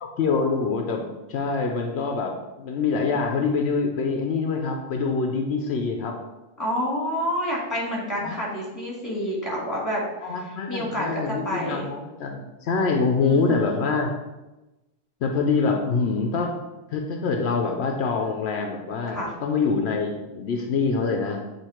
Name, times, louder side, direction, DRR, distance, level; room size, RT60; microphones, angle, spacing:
voice 1, 0.0-1.0 1.3-6.2 8.2-8.4 10.2-14.1 15.2-16.5 16.9-21.4, left 4 dB, 80° left, 2 dB, 0.9 m, -25 dB
voice 2, 6.6-10.0 10.7-11.9 13.2-13.7 19.1-19.3, equal, 15° left, -4 dB, 1.8 m, -28 dB
8.1 x 2.8 x 4.3 m, 1.0 s
omnidirectional pair, 1.1 m